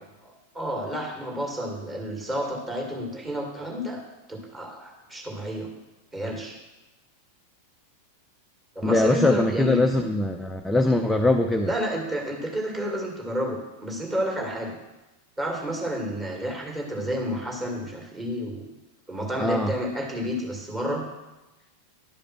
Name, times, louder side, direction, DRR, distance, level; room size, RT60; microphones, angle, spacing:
voice 1, 0.2-4.0 4.3-5.7 6.1-6.6 8.8-9.8 11.6-14.8 15.4-18.7 19.1-21.0, equal, 15° right, 0 dB, 2.2 m, -30 dB
voice 2, 8.8-11.7 19.4-19.7, left 2 dB, 5° left, 3 dB, 0.6 m, -22 dB
11.0 x 5.1 x 5.8 m, 1.1 s
figure-of-eight pair, 90°, 0 cm